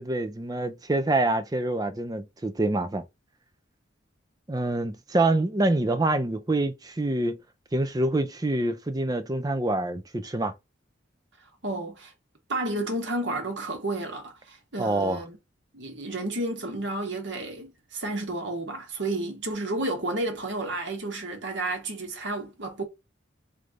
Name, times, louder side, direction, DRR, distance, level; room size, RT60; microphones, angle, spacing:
voice 1, 0.0-3.0 4.5-7.4 7.7-10.5 14.8-15.2, right 2 dB, 20° right, 0.4 m, -26 dB
voice 2, 11.6-12.1 12.5-15.4 15.7-22.8, right 2 dB, 65° right, 1.3 m, -31 dB
3.3 x 3.3 x 3.7 m
head